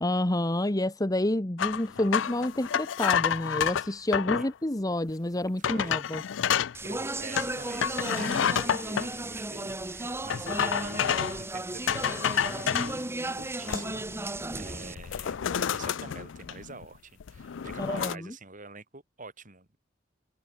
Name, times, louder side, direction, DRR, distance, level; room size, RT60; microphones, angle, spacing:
voice 1, 0.0-6.2 17.8-18.3, left 1 dB, 20° left, 1.2 m, -29 dB
sound 1, 1.6-4.5 5.1-5.2 5.6-6.7 7.3-9.1 10.3-11.4 11.9-13.0 13.4-14.1 14.4-14.6 15.0-16.8 17.2-18.1, left 8 dB, 75° left, 0.4 m, -29 dB
voice 2, 5.6-5.9 6.8-13.0 13.4-19.8, right 3 dB, 45° right, 7.3 m, -46 dB
Speech, 6.7-14.9, right 2 dB, 15° right, 1.5 m, -35 dB
open air
head